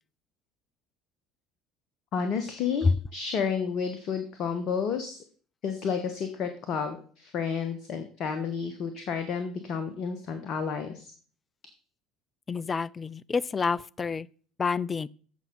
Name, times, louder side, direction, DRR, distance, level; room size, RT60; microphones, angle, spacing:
voice 1, 2.1-5.2 5.6-11.1, left 6 dB, 45° left, 1.1 m, -31 dB
voice 2, 12.5-14.3 14.6-15.1, left 4 dB, 25° left, 0.3 m, -27 dB
14.5 x 5.7 x 4.0 m
figure-of-eight pair, 60°, 0 cm